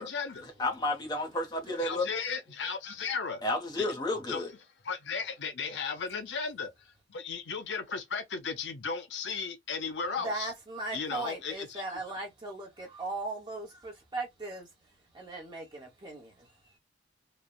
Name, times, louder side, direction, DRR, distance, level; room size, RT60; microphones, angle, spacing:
voice 1, 0.0-0.5 1.8-3.4 3.8-3.9 4.3-4.5 4.8-10.5 10.9-11.8, left 5 dB, 65° left, 0.6 m, -35 dB
voice 2, 0.6-2.1 3.4-4.5, left 2 dB, 20° left, 0.8 m, -31 dB
voice 3, 10.2-14.7 15.1-16.5, right 2 dB, 25° right, 1.0 m, -38 dB
3.2 x 2.1 x 2.2 m
head